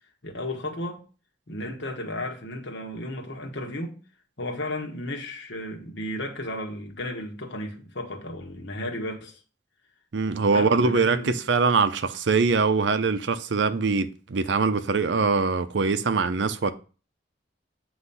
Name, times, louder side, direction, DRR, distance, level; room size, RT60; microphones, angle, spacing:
voice 1, 0.2-1.0 1.5-4.0 4.4-9.4 10.5-11.4, left 1 dB, 75° left, 1.5 m, -34 dB
voice 2, 10.1-16.7, right 4 dB, 70° right, 0.6 m, -23 dB
8.0 x 3.1 x 5.5 m
head